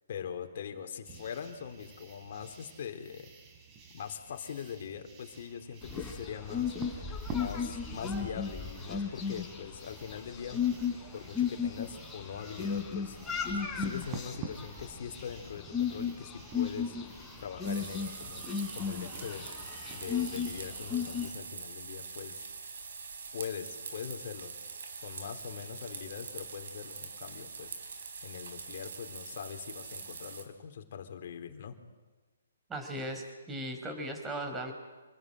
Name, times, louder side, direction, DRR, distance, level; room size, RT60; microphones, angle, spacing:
voice 1, 0.1-3.3 3.9-10.6 11.1-13.2 13.5-18.5 18.7-22.5 23.3-24.5 25.0-27.8 28.2-31.8, left 7 dB, 50° left, 5 dB, 3.6 m, -42 dB
sound 1, 1.0-20.2, right 5 dB, 25° right, 3.9 m, -50 dB
sound 2, 5.8-21.3, left 6 dB, 10° left, 4.9 m, -35 dB
sound 3, 17.6-30.4, right 5 dB, 60° right, 4.5 m, -44 dB
voice 2, 32.7-34.7, right 1 dB, 10° right, 4 dB, 5.1 m, -37 dB
28.0 x 21.5 x 9.2 m, 1.3 s
figure-of-eight pair, 130°, 0 cm